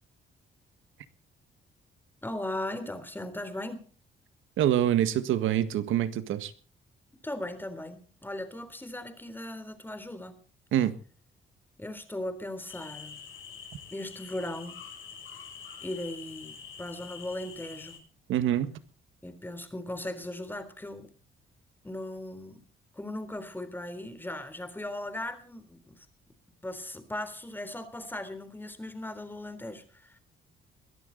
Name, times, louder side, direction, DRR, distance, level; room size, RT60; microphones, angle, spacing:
voice 1, 2.2-3.9 7.2-10.4 11.8-13.2 13.9-14.8 15.8-18.0 19.2-21.1 21.8-22.6 22.9-26.1 26.6-30.2, left 1 dB, 10° left, 10 dB, 3.6 m, -38 dB
voice 2, 4.6-6.5 10.7-10.9 18.3-18.7, right 11 dB, 85° right, 11 dB, 1.8 m, -25 dB
sound 1, 12.7-18.0, left 7 dB, 80° left, 7.4 m, -46 dB
21.5 x 14.0 x 4.1 m, 0.39 s
cardioid pair, 90°, 20 cm